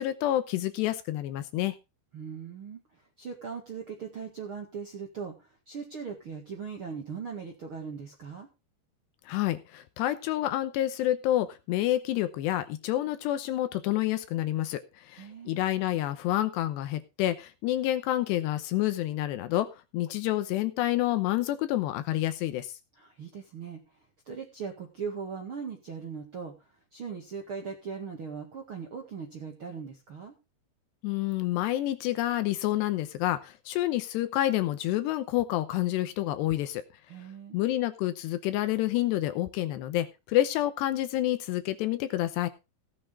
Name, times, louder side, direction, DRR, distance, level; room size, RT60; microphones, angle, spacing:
voice 1, 0.0-1.8 9.3-22.7 31.0-36.8 37.5-42.5, left 14 dB, 80° left, 11 dB, 2.8 m, -28 dB
voice 2, 2.1-8.5 15.2-15.7 22.9-30.3 37.1-37.6, right 6 dB, 55° right, 1 dB, 1.4 m, -40 dB
16.5 x 8.8 x 3.7 m, 0.27 s
omnidirectional pair, 5.3 m